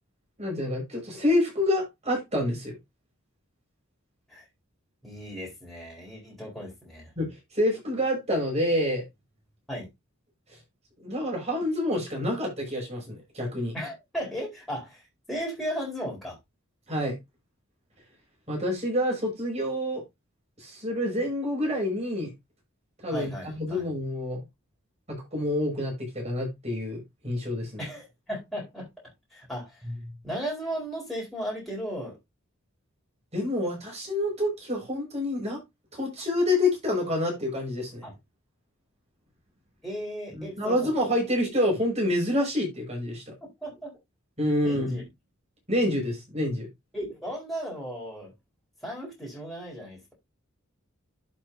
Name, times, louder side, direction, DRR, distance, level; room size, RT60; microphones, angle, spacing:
voice 1, 0.4-2.8 7.2-7.3 7.5-9.0 11.0-13.7 16.9-17.2 18.5-20.0 20.6-22.3 23.0-24.4 25.1-27.8 29.8-29.9 33.3-35.6 35.9-38.0 40.4-43.2 44.4-45.0 45.7-46.7, left 1 dB, 30° right, 5.7 m, -27 dB
voice 2, 5.0-7.1 9.7-9.9 13.7-15.0 15.3-16.4 23.1-23.8 27.8-28.9 29.3-29.8 30.2-32.2 38.0-38.1 39.8-40.9 43.6-43.9 44.5-45.0 46.9-48.3 48.8-50.1, equal, ahead, 4.2 m, -35 dB
11.5 x 5.6 x 2.7 m
head